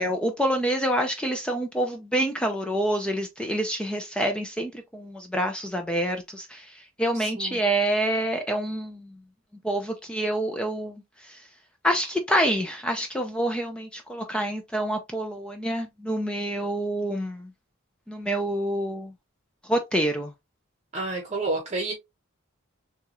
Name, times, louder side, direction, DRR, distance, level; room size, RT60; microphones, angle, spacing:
voice 1, 0.0-9.1 9.6-11.4 11.8-17.5 18.1-19.1 19.7-20.3, right 1 dB, 5° left, 0.4 m, -27 dB
voice 2, 7.1-7.6 20.9-21.9, right 2 dB, 35° right, 0.9 m, -30 dB
6.8 x 2.3 x 3.0 m
head